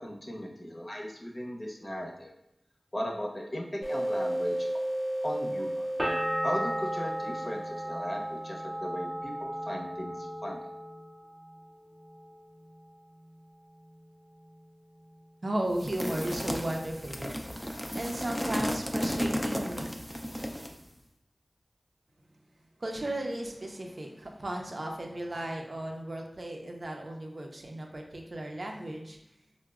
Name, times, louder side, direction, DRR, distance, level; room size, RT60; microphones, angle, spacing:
voice 1, 0.0-2.3 2.9-4.7 5.2-5.9 6.4-10.6, equal, 35° left, -1 dB, 0.7 m, -37 dB
sound 1, 3.8-9.1, right 1 dB, 90° left, 0.7 m, -34 dB
sound 2, 6.0-11.6 11.9-12.7, equal, 15° right, 0.7 m, -35 dB
voice 2, 15.4-17.7 17.9-19.8 22.8-29.2, right 1 dB, 60° right, 2 dB, 0.5 m, -35 dB
sound 3, 15.8-20.8, equal, 10° left, 0.4 m, -33 dB
4.5 x 2.1 x 2.3 m, 0.83 s
wide cardioid pair, 50°, 0 cm